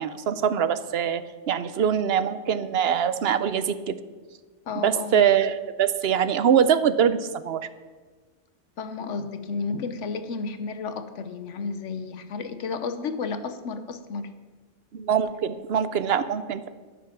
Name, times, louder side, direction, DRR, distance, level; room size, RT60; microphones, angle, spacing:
voice 1, 0.0-4.0 4.8-7.6 14.9-16.7, right 8 dB, 60° right, 13 dB, 0.9 m, -23 dB
voice 2, 4.7-5.2 8.8-14.3, left 4 dB, 80° left, 10 dB, 1.2 m, -32 dB
12.0 x 9.1 x 5.9 m, 1.4 s
omnidirectional pair, 1.2 m